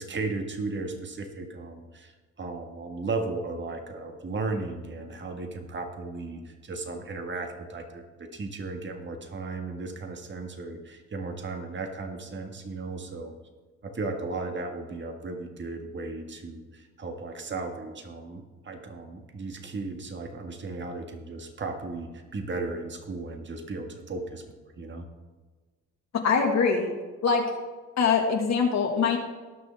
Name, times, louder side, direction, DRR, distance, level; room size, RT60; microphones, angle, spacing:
voice 1, 0.0-13.3 13.8-24.4 24.8-25.1, right 3 dB, 40° right, 4 dB, 1.7 m, -35 dB
voice 2, 26.2-26.9 27.2-27.4 28.0-29.2, left 5 dB, 60° left, 2 dB, 1.6 m, -23 dB
18.5 x 6.3 x 3.5 m, 1.3 s
cardioid pair, 90°, 30 cm